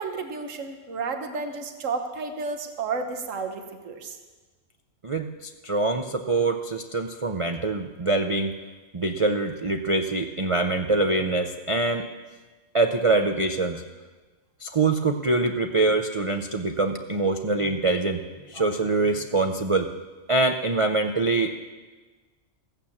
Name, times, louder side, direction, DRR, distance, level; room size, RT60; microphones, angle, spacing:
voice 1, 0.0-4.2, right 4 dB, 65° right, 6 dB, 1.5 m, -32 dB
voice 2, 5.0-8.5 8.9-12.0 12.7-13.8 14.6-18.2 18.5-19.9 20.3-21.5, right 3 dB, 45° right, 5 dB, 0.4 m, -24 dB
15.0 x 9.1 x 7.1 m, 1.3 s
omnidirectional pair, 1.4 m